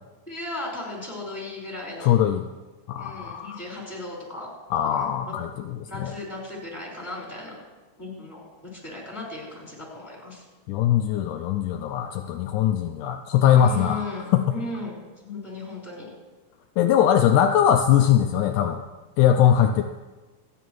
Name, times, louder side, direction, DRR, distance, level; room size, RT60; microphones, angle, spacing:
voice 1, 0.3-2.2 3.0-4.5 4.8-7.6 8.0-8.4 8.7-10.4 13.5-16.1, left 2 dB, 5° left, -4 dB, 4.5 m, -36 dB
voice 2, 2.0-2.4 2.9-3.6 4.7-5.5 6.0-6.1 10.7-14.1 14.3-14.4 16.8-18.8 19.2-19.8, left 10 dB, 80° left, 6 dB, 2.0 m, -20 dB
27.5 x 10.0 x 3.1 m, 1.2 s
omnidirectional pair, 3.8 m